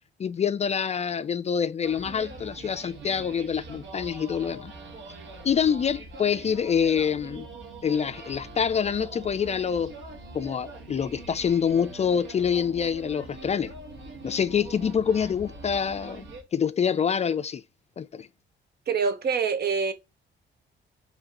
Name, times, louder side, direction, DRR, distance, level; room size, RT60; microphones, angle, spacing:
voice 1, 0.2-4.7 5.4-7.5 7.8-10.0 10.3-13.7 14.2-17.6 18.0-18.3, left 7 dB, 35° left, 0.4 m, -26 dB
sound 1, 1.8-16.4, right 2 dB, 75° right, 1.5 m, -43 dB
voice 2, 18.9-19.9, right 5 dB, 55° right, 0.9 m, -25 dB
5.1 x 3.2 x 2.9 m
cardioid pair, 90°, 20 cm